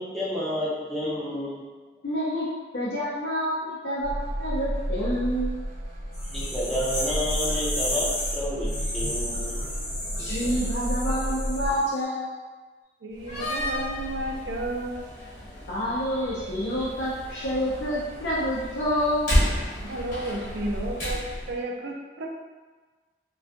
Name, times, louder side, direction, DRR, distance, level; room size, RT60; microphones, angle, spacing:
voice 1, 0.0-1.6 6.3-8.7 8.9-9.6 10.2-10.5, left 1 dB, ahead, -9 dB, 0.4 m, -30 dB
voice 2, 2.0-2.5 2.7-5.6 10.2-12.4 15.7-19.4, equal, 75° left, -8 dB, 0.5 m, -28 dB
sound 1, 4.0-11.8, equal, 45° right, 0.7 m, -32 dB
sound 2, 6.1-11.9, left 1 dB, 35° left, 0.8 m, -33 dB
voice 3, 13.0-15.0 19.8-21.2 21.5-22.3, right 1 dB, 85° right, -1 dB, 0.4 m, -32 dB
Slam, 13.1-21.6, equal, 50° left, 1.0 m, -31 dB
2.4 x 2.2 x 2.5 m, 1.3 s
head